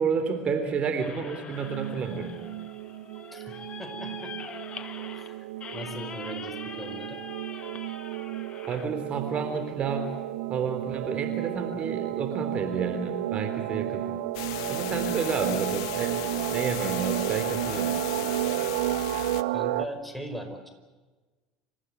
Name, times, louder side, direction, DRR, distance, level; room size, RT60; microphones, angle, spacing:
voice 1, 0.0-2.3 8.7-10.1 10.5-14.0 14.7-16.2 16.5-17.9, right 5 dB, 40° right, 6 dB, 3.5 m, -30 dB
sound 1, 1.0-8.9, left 6 dB, 35° left, 1.8 m, -43 dB
sound 2, 1.5-19.9, right 15 dB, 70° right, 0.9 m, -32 dB
voice 2, 3.8-4.3 5.2-5.5 5.7-7.2 15.0-15.4 17.8-18.0 19.5-20.7, equal, ahead, 5 dB, 5.0 m, -39 dB
sound 3, 14.3-19.4, left 13 dB, 70° left, 1.0 m, -36 dB
27.5 x 15.0 x 9.4 m, 1.3 s
hypercardioid pair, 70°, 3 cm